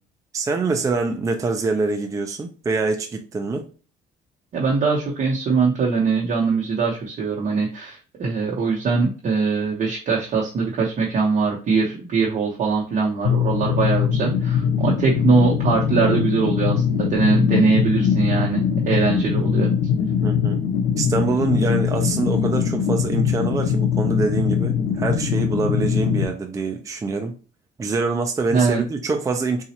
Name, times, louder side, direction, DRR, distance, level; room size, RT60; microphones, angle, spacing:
voice 1, 0.3-3.7 20.2-20.6 21.0-27.3 27.8-29.6, right 3 dB, 20° right, 0.5 m, -25 dB
voice 2, 4.5-19.7 28.5-28.8, right 5 dB, 45° right, 0.9 m, -22 dB
sound 1, 13.2-26.2, left 7 dB, 80° left, 0.9 m, -21 dB
4.0 x 2.4 x 2.8 m
cardioid pair, 110°, 17 cm